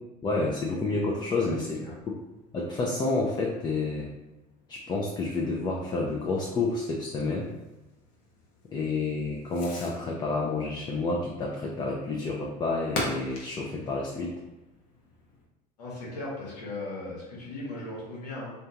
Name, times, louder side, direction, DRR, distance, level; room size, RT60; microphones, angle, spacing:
voice 1, 0.2-2.2 2.5-4.1 4.7-7.5 8.7-14.3, left 3 dB, 20° left, -1 dB, 0.4 m, -29 dB
Fireworks, 0.9-15.5, left 2 dB, 65° left, 0.8 m, -44 dB
voice 2, 15.8-18.5, left 2 dB, 90° left, -5 dB, 1.0 m, -37 dB
2.5 x 2.3 x 2.8 m, 1.0 s
hypercardioid pair, 85°, 20 cm